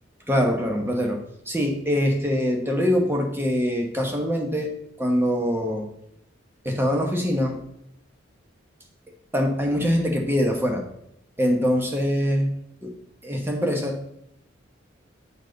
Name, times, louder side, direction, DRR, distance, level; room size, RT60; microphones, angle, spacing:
voice 1, 0.3-4.7 5.0-5.9 6.6-7.6 9.3-10.8 11.4-12.5 12.8-12.9 13.2-14.0, equal, 10° right, 2 dB, 1.0 m, -23 dB
7.3 x 5.3 x 3.9 m, 0.76 s
head